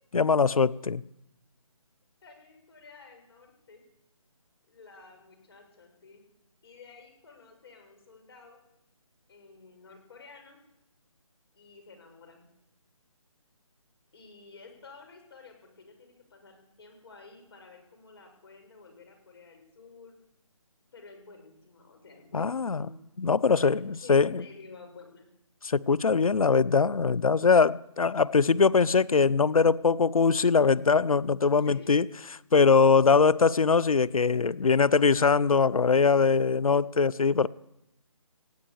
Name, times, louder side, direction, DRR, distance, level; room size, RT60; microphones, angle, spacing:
voice 1, 0.1-1.0 22.3-22.9 23.2-24.4 25.6-32.1 32.5-37.5, left 5 dB, 80° left, 0.7 m, -22 dB
voice 2, 2.2-3.8 4.7-6.2 6.6-8.6 9.3-10.6 11.5-12.5 14.1-20.2 20.9-23.0 23.5-25.3 31.6-31.9, left 4 dB, 45° left, 6.7 m, -52 dB
19.0 x 16.5 x 8.6 m
figure-of-eight pair, 160°, 18 cm